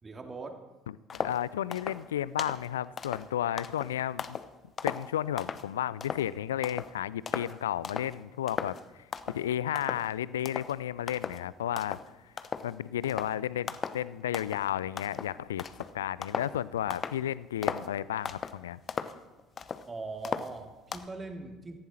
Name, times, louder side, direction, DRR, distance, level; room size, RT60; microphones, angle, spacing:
voice 1, 0.0-0.6 19.9-21.8, right 3 dB, 20° right, 4 dB, 2.5 m, -41 dB
voice 2, 1.1-4.4 4.8-12.0 12.2-12.3 12.6-15.6 15.9-19.1, left 11 dB, 70° left, 20 dB, 0.4 m, -33 dB
sound 1, 1.1-1.4 1.7-2.0 2.4-2.7 3.0-4.5 4.8-5.7 6.0-6.3 6.6-6.9 7.3-7.6 7.8-8.2 8.5-8.8 9.1-9.4 9.7-10.1 10.4-10.7 11.1-11.4 11.8-12.1 12.4-12.7 13.0-13.3 13.7-14.0 14.3-14.7 15.0-16.5 16.9-17.2 17.6-17.9 18.2-18.6 18.9-19.9 20.2-21.0, left 6 dB, 35° left, 0.9 m, -36 dB
18.0 x 14.5 x 4.3 m, 1.1 s
figure-of-eight pair, 60°, 0 cm